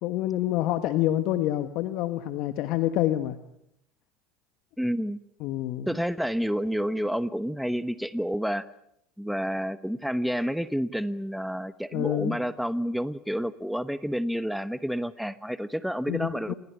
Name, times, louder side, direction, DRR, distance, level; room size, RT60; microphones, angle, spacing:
voice 1, 0.0-3.4 5.4-6.0 11.9-12.4 16.1-16.5, left 14 dB, 60° left, 10 dB, 1.5 m, -27 dB
voice 2, 4.8-5.2 5.9-8.7 9.2-16.5, equal, ahead, 14 dB, 1.1 m, -29 dB
28.0 x 20.5 x 8.3 m, 0.77 s
hypercardioid pair, 80°, 0 cm